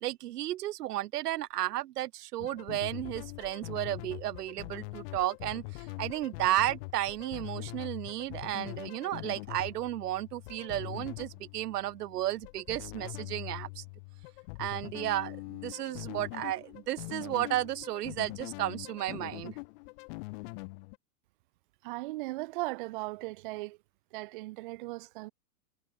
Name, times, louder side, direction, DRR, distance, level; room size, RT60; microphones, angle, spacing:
voice 1, 0.0-13.8 14.6-19.5, right 14 dB, 75° right, 0.8 m, -33 dB
sound 1, 2.4-21.0, left 28 dB, 35° left, 1.0 m, -43 dB
voice 2, 21.8-23.8 24.1-25.3, right 21 dB, 35° right, 0.5 m, -37 dB
hypercardioid pair, 145°, 47 cm